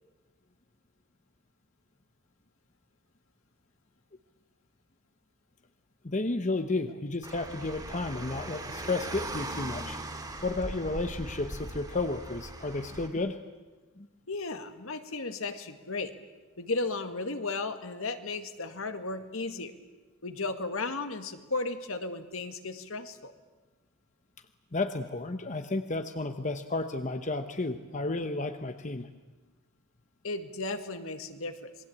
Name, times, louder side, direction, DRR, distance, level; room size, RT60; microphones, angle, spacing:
voice 1, 6.0-10.0 10.4-13.4 14.0-14.1 24.7-29.1, left 2 dB, 35° left, 8 dB, 1.0 m, -32 dB
Car, 7.2-13.1, right 1 dB, 20° right, 3.1 m, -39 dB
voice 2, 14.3-16.1 16.6-19.7 20.2-23.3 30.2-31.7, left 3 dB, 65° left, 8 dB, 1.9 m, -35 dB
27.5 x 21.5 x 8.6 m, 1.3 s
head